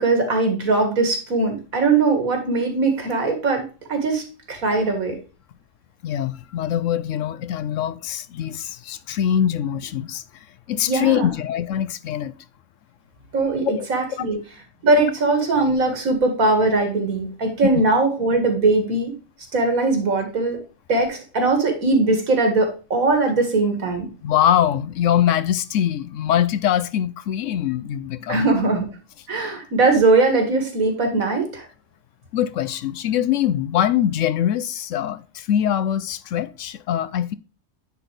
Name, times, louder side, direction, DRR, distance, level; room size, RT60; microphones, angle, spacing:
voice 1, 0.0-5.2 10.9-11.3 13.3-14.4 14.8-19.1 19.5-20.6 20.9-24.1 28.3-28.9 29.3-31.7, right 3 dB, 80° right, 2.3 m, -20 dB
voice 2, 6.0-10.2 10.7-12.3 13.6-13.9 15.9-16.0 17.7-17.8 24.2-28.5 32.3-37.3, left 10 dB, 70° left, 0.9 m, -23 dB
9.9 x 4.1 x 3.2 m
omnidirectional pair, 1.4 m